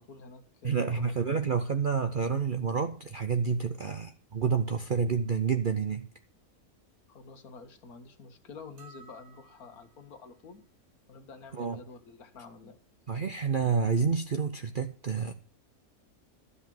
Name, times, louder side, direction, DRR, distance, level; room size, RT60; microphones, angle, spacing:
voice 1, 0.0-1.4 7.1-10.6 11.1-12.8, left 4 dB, 90° left, 6 dB, 1.8 m, -49 dB
voice 2, 0.6-6.1 11.6-11.8 13.1-15.3, right 6 dB, 45° right, 7 dB, 0.7 m, -29 dB
sound 1, 8.8-10.1, right 5 dB, 70° right, 2.2 m, -55 dB
12.5 x 5.6 x 7.5 m, 0.41 s
omnidirectional pair, 1.5 m